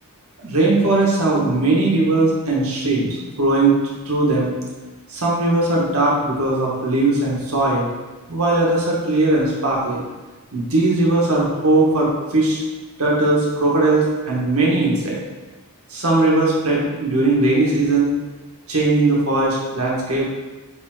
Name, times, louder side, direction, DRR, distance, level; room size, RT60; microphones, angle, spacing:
voice 1, 0.4-3.7 4.0-4.5 5.1-7.9 8.3-10.0 10.5-12.6 13.0-15.2 15.9-18.1 18.7-20.2, right 2 dB, 75° right, -4 dB, 1.7 m, -19 dB
9.6 x 3.6 x 3.9 m, 1.2 s
head